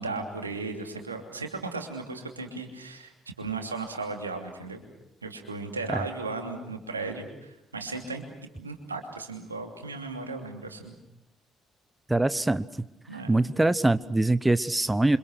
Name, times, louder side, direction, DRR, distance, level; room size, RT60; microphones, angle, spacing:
voice 1, 0.0-3.1 3.4-4.8 5.2-8.3 8.6-10.9 13.1-13.4, right 3 dB, 85° right, 4 dB, 2.8 m, -36 dB
voice 2, 12.1-12.7 13.3-15.2, right 2 dB, 15° right, 16 dB, 0.9 m, -23 dB
28.5 x 26.0 x 6.5 m, 0.86 s
figure-of-eight pair, 45°, 0 cm